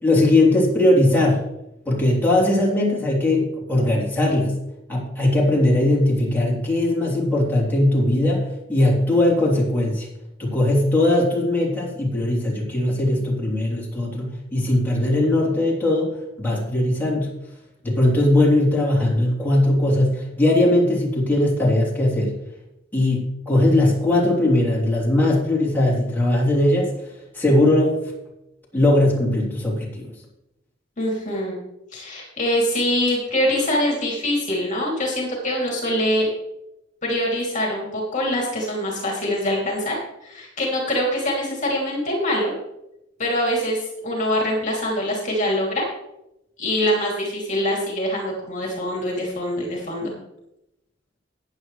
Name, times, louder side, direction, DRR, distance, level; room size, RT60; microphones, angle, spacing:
voice 1, 0.0-1.4 1.8-4.6 4.9-10.1 10.4-17.3 17.8-22.3 22.9-26.9 27.3-28.0 28.7-30.1, left 1 dB, 10° left, -5 dB, 3.4 m, -19 dB
voice 2, 31.0-31.6 31.9-36.3 37.0-40.0 40.2-42.5 43.2-45.9 46.6-50.1, left 1 dB, 40° left, -2 dB, 2.8 m, -24 dB
14.5 x 9.6 x 3.2 m, 0.86 s
head